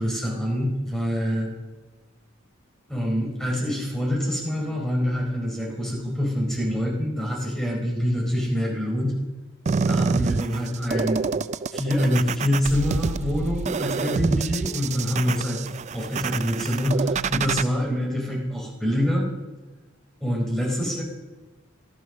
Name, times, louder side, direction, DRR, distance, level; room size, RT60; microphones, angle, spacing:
voice 1, 0.0-1.5 2.9-9.1 9.9-11.2 11.7-15.6 15.9-19.2 20.2-21.0, equal, 5° left, -2 dB, 4.2 m, -25 dB
sound 1, 9.7-17.6, right 4 dB, 35° right, 0.4 m, -27 dB
14.5 x 12.0 x 6.2 m, 1.2 s
head